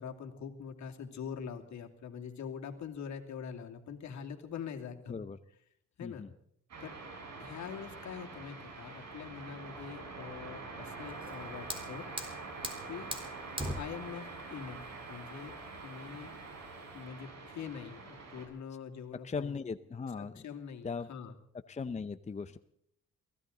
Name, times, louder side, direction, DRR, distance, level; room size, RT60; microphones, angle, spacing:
voice 1, 0.0-5.2 6.0-6.2 6.8-6.9 7.4-12.1 12.9-13.1 13.7-15.6 15.8-16.3 16.9-19.6 20.2-21.3, left 7 dB, 70° left, 4 dB, 2.7 m, -44 dB
voice 2, 6.0-6.3 19.2-20.4 20.8-21.1 21.7-22.6, left 5 dB, 25° left, 11 dB, 0.6 m, -38 dB
sound 1, 6.7-18.5, right 3 dB, 60° right, 6.1 m, -45 dB
Fire, 11.1-17.0, right 1 dB, 15° right, 3.8 m, -43 dB
23.0 x 16.0 x 3.9 m, 0.70 s
cardioid pair, 90°, 30 cm